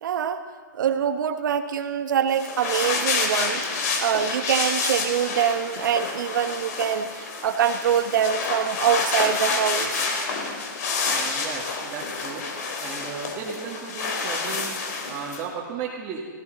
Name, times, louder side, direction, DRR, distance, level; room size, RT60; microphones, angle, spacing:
voice 1, 0.0-0.4 0.7-10.1, right 8 dB, 70° right, 8 dB, 1.2 m, -24 dB
sound 1, 2.3-15.4, left 4 dB, 55° left, 2.7 m, -28 dB
voice 2, 11.1-12.4 12.8-14.8 15.1-16.3, right 6 dB, 25° right, -6 dB, 1.9 m, -35 dB
16.0 x 16.0 x 4.0 m, 1.5 s
hypercardioid pair, 150°, 11 cm